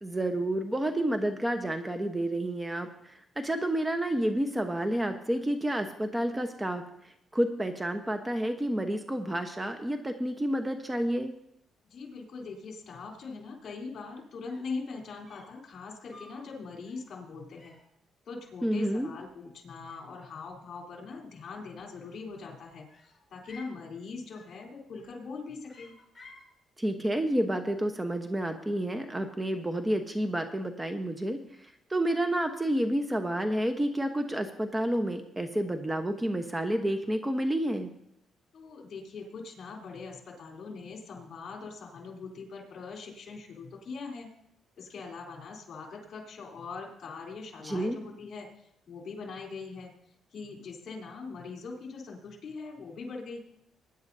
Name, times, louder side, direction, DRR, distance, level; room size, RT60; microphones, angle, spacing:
voice 1, 0.0-6.8 7.3-11.3 18.6-19.1 26.8-37.9 47.6-48.0, right 1 dB, 15° right, 6 dB, 1.1 m, -30 dB
voice 2, 11.8-17.8 18.3-25.9 38.5-44.3 44.8-49.9 50.3-53.4, left 4 dB, 55° left, 0 dB, 3.7 m, -42 dB
sound 1, 14.5-14.8 15.3-15.6 16.1-16.5 16.8-17.1 17.6-17.9 18.7-19.6 19.8-20.5 21.8-22.4 22.9-23.8 24.3-24.6 24.9-25.3 25.7-26.5, left 3 dB, 25° left, 5.7 m, -55 dB
21.0 x 10.5 x 2.8 m, 0.75 s
cardioid pair, 90°, 0 cm